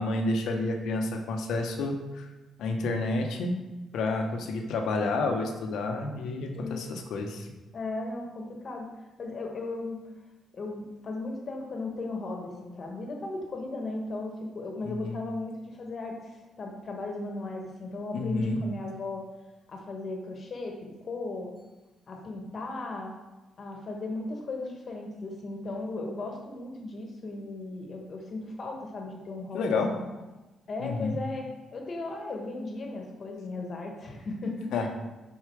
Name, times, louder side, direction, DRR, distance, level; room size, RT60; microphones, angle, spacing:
voice 1, 0.0-2.2 2.6-3.6 3.9-7.5 14.8-15.2 18.1-18.6 29.5-29.9 30.8-31.1 34.7-34.9, left 3 dB, 75° left, 3 dB, 0.9 m, -30 dB
voice 2, 7.7-8.9 9.2-10.0 10.5-19.2 19.7-21.5 22.1-23.1 23.6-30.2 30.7-34.9, left 2 dB, 45° left, 1 dB, 1.4 m, -36 dB
5.5 x 4.8 x 4.7 m, 1.1 s
cardioid pair, 90°, 0 cm